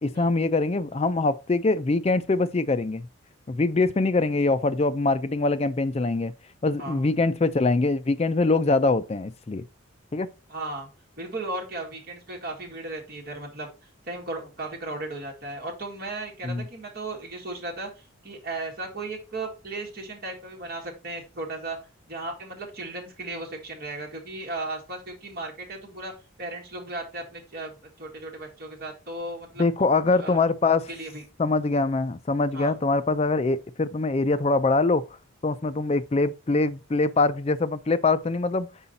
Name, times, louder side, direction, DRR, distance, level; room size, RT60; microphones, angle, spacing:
voice 1, 0.0-3.1 3.5-6.3 6.6-9.6 10.1-10.3 16.4-16.6 29.6-30.9 31.4-35.0 35.4-38.7, left 3 dB, 30° left, 0.4 m, -23 dB
voice 2, 10.5-10.9 11.2-13.7 14.1-21.8 22.1-26.1 26.4-29.7 30.1-30.4 30.9-31.2 32.5-32.8, right 2 dB, 45° right, 1.9 m, -36 dB
5.5 x 4.8 x 4.1 m
head